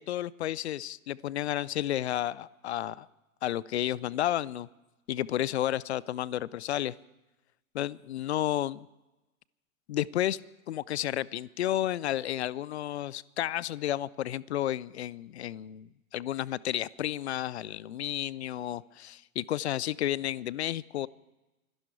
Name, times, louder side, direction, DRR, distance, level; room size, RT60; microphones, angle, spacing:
voice 1, 0.0-3.1 3.4-4.7 5.1-7.0 7.7-8.9 9.9-10.4 10.7-21.1, left 12 dB, 50° left, 23 dB, 0.5 m, -32 dB
24.5 x 12.0 x 4.6 m, 1.0 s
figure-of-eight pair, 105°, 43 cm